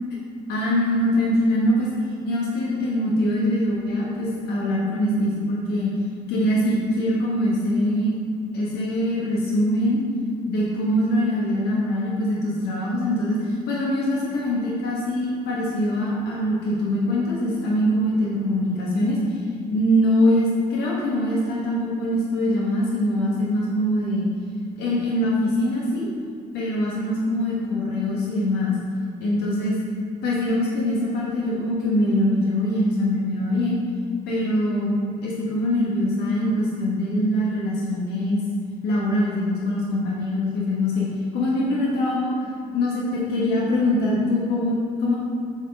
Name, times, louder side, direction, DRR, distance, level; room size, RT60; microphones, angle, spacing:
voice 1, 0.5-1.9 2.2-5.9 6.3-8.1 8.5-10.0 10.4-19.2 19.7-24.3 24.8-26.1 26.5-28.8 29.2-29.8 30.2-33.8 34.3-35.0 35.2-38.4 38.8-41.1 41.3-42.5 42.7-45.2, left 1 dB, 75° left, -5 dB, 1.2 m, -23 dB
6.9 x 4.0 x 3.7 m, 2.4 s
cardioid pair, 110°, 17 cm